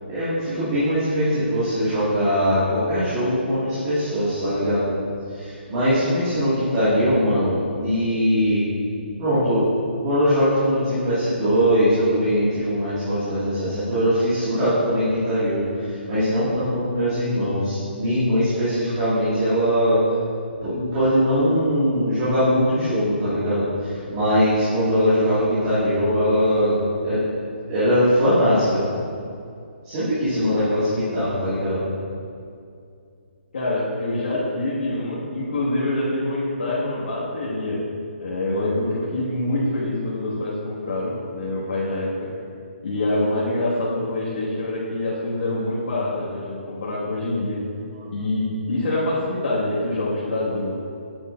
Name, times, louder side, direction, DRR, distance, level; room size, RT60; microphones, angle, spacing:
voice 1, 0.1-4.8 5.3-8.6 9.2-9.6 10.0-20.0 20.6-27.3 27.7-28.8 29.8-31.8, equal, 20° right, -13 dB, 1.9 m, -21 dB
voice 2, 33.5-37.8 38.2-42.3 42.8-47.6 48.1-50.7, left 1 dB, 65° left, -9 dB, 1.7 m, -25 dB
8.8 x 8.3 x 2.5 m, 2.4 s
hypercardioid pair, 175°, 6 cm